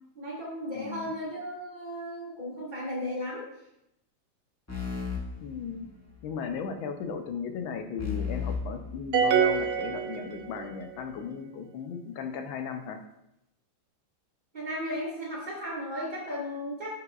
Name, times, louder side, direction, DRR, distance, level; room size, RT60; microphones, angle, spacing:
voice 1, 0.2-3.5 14.5-16.9, equal, 25° right, -4 dB, 1.7 m, -35 dB
voice 2, 0.7-1.1 5.4-5.9 6.2-13.0, left 6 dB, 85° left, 6 dB, 1.5 m, -36 dB
sound 1, 4.7-6.3 8.0-9.7, left 6 dB, 15° left, 0.5 m, -35 dB
sound 2, 9.1-10.8, right 8 dB, 70° right, 0.9 m, -26 dB
9.8 x 4.7 x 2.4 m, 0.83 s
omnidirectional pair, 2.1 m